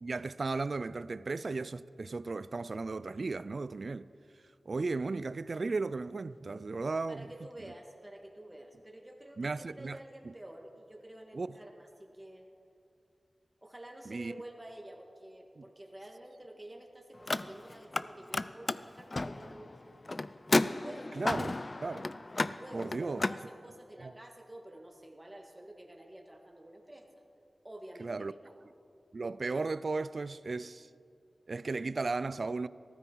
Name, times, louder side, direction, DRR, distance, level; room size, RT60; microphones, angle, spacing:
voice 1, 0.0-4.1 4.7-7.3 9.4-10.0 10.2-10.3 11.3-11.6 14.1-14.3 15.6-15.7 21.1-22.1 22.7-23.2 24.0-24.1 28.0-28.3 29.1-30.9 31.5-32.7, right 3 dB, 65° right, 0.3 m, -35 dB
voice 2, 7.1-12.5 13.6-19.8 20.6-21.3 22.4-27.1 27.6-28.5, right 1 dB, 20° right, 1.9 m, -50 dB
Car, 17.1-18.0 18.3-23.4, left 2 dB, 45° left, 0.4 m, -33 dB
15.0 x 13.5 x 4.6 m
cardioid pair, 45°, 0 cm